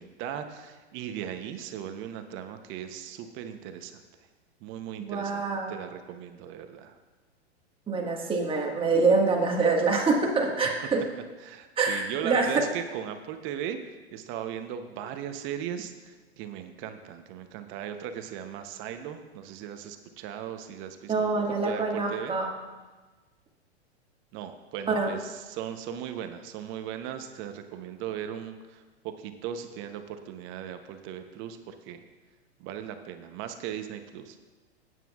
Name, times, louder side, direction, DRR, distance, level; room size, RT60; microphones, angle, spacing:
voice 1, 0.0-4.0 4.6-5.4 5.7-7.0 11.4-21.3 21.6-22.4 24.3-32.0 32.6-34.4, right 9 dB, 35° right, 8 dB, 0.8 m, -38 dB
voice 2, 5.0-5.7 7.9-11.0 11.8-12.6 21.1-22.5 24.9-25.1, right 4 dB, 15° right, 0 dB, 1.7 m, -25 dB
16.0 x 9.2 x 2.4 m, 1.3 s
hypercardioid pair, 115°, 34 cm